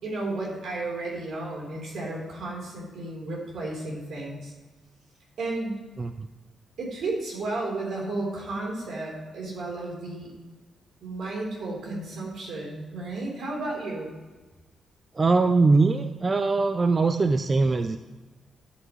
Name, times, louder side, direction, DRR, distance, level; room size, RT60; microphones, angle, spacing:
voice 1, 0.0-4.5 5.4-5.8 6.8-10.3 11.0-14.1, right 2 dB, 75° right, -2 dB, 3.7 m, -33 dB
voice 2, 15.1-18.0, right 3 dB, 25° right, 8 dB, 0.4 m, -22 dB
12.5 x 8.8 x 3.1 m, 1.3 s
wide cardioid pair, 135°, 0 cm